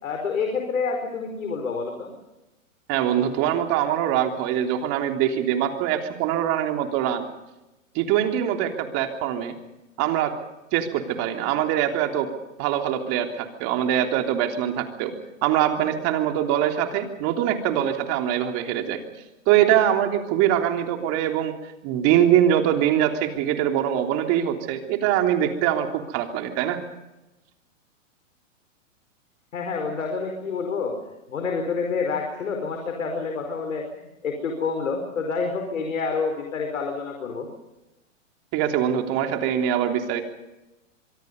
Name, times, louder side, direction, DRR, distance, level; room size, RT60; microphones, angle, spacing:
voice 1, 0.0-2.1 29.5-31.0 31.3-37.5, left 5 dB, 80° left, 4 dB, 4.9 m, -28 dB
voice 2, 2.9-7.3 7.9-9.6 10.0-10.4 10.7-12.3 12.6-15.1 15.4-19.0 19.5-21.5 21.8-26.8 38.5-40.2, right 10 dB, 40° right, 4 dB, 3.4 m, -23 dB
25.0 x 23.0 x 5.4 m, 0.98 s
hypercardioid pair, 120°, 39 cm